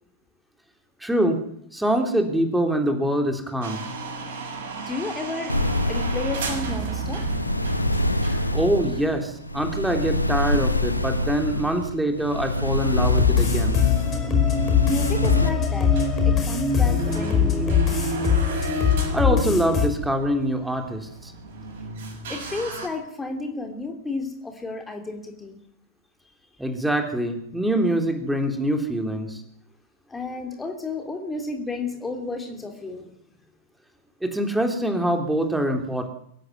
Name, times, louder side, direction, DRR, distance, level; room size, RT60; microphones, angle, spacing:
voice 1, 1.0-1.4 1.7-3.8 8.5-13.8 19.1-21.3 26.6-29.4 34.2-36.1, right 1 dB, 5° right, 4 dB, 3.4 m, -24 dB
sound 1, 3.6-11.8 12.1-12.2 12.7-12.8 13.8-13.9 14.1-14.2 14.6-14.7 15.1-15.4 15.7-15.8 15.9-22.9, right 4 dB, 55° right, 6.3 m, -36 dB
voice 2, 4.8-5.5 5.9-7.2 14.9-15.9 16.2-17.8 22.3-25.6 30.1-33.1, left 3 dB, 10° left, 4 dB, 3.3 m, -32 dB
sound 2, 5.5-15.5, left 1 dB, 85° left, 1.7 m, -25 dB
sound 3, 13.0-19.9, left 6 dB, 25° left, 5.6 m, -21 dB
23.0 x 15.5 x 9.6 m, 0.74 s
figure-of-eight pair, 90°, 0 cm